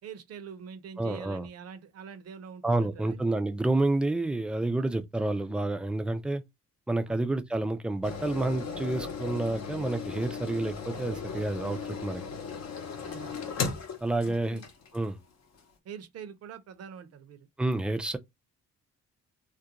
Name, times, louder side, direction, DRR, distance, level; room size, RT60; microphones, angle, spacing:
voice 1, 0.0-3.2 7.1-7.2 13.0-13.4 14.2-14.7 15.8-17.5, right 7 dB, 55° right, 0.6 m, -45 dB
voice 2, 1.0-1.5 2.6-6.4 6.9-12.2 14.0-14.6 14.9-15.2 17.6-18.2, right 2 dB, 5° right, 0.3 m, -29 dB
sound 1, 8.0-15.0 15.6-15.7, left 5 dB, 60° left, 0.7 m, -37 dB
2.4 x 2.2 x 2.8 m
cardioid pair, 90°, 30 cm